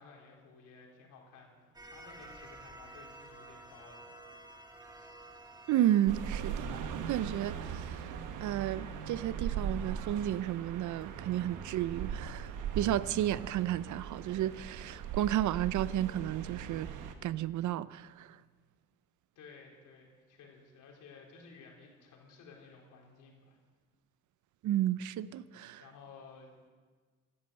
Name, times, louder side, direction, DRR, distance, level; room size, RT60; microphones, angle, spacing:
voice 1, 0.0-4.1 19.4-23.6 25.8-26.6, left 4 dB, 85° left, 3.9 m, -55 dB
sound 1, 1.7-7.2, right 2 dB, 15° right, 2.2 m, -52 dB
voice 2, 5.7-8.0 8.4-16.9 17.2-18.3 24.6-25.8, right 12 dB, 75° right, 0.6 m, -32 dB
sound 2, 6.1-17.1, right 7 dB, 90° right, 1.2 m, -40 dB
16.5 x 12.5 x 6.8 m
cardioid pair, 90°, 30 cm